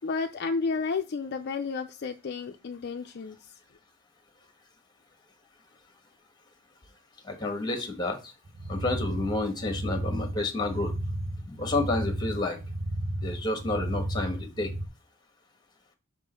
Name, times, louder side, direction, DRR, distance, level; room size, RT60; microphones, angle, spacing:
voice 1, 0.0-3.4, left 4 dB, 45° left, 0.4 m, -31 dB
voice 2, 7.3-8.2 8.7-10.9 11.5-12.6 13.2-14.7, left 2 dB, 20° left, 1.3 m, -30 dB
sound 1, 8.5-14.9, right 1 dB, 40° right, 0.6 m, -33 dB
6.0 x 3.7 x 5.0 m
head